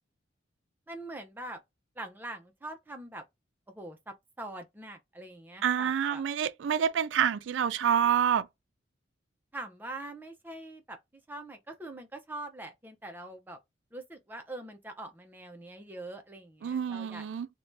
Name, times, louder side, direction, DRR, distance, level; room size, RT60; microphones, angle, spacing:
voice 1, 0.9-1.6 2.0-3.2 3.7-6.2 9.5-11.0 11.3-13.6 13.9-17.3, right 2 dB, 10° right, 0.5 m, -43 dB
voice 2, 5.6-8.5 16.6-17.5, right 8 dB, 85° right, 0.3 m, -27 dB
2.6 x 2.2 x 3.1 m
head